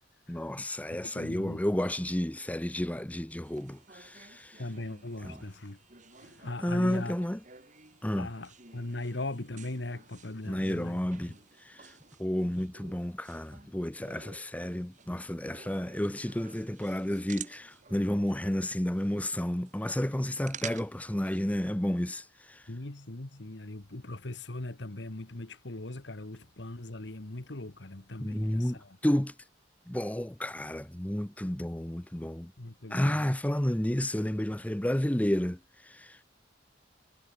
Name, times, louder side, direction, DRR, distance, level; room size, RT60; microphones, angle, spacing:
voice 1, 0.3-4.6 5.2-5.4 6.6-7.4 8.0-8.3 10.4-11.3 11.6-22.7 28.2-29.3 29.9-32.5 32.9-36.2, left 1 dB, 10° left, 0.7 m, -31 dB
voice 2, 0.9-1.6 4.6-5.8 6.1-7.1 8.2-11.0 22.7-29.0 32.6-33.2, left 2 dB, 70° left, 1.6 m, -39 dB
sound 1, 3.4-21.5, right 7 dB, 40° right, 4.4 m, -51 dB
head